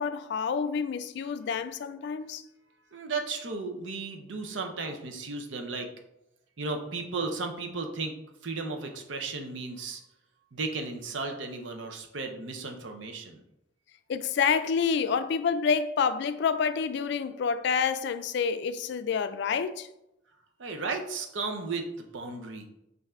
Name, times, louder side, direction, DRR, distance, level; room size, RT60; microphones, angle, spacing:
voice 1, 0.0-2.4 14.1-19.9, left 6 dB, 65° left, 0.3 m, -28 dB
voice 2, 2.9-5.9 6.6-8.2 8.4-10.0 10.5-13.4 20.6-22.7, right 3 dB, 80° right, 0.7 m, -35 dB
5.5 x 2.6 x 3.6 m
head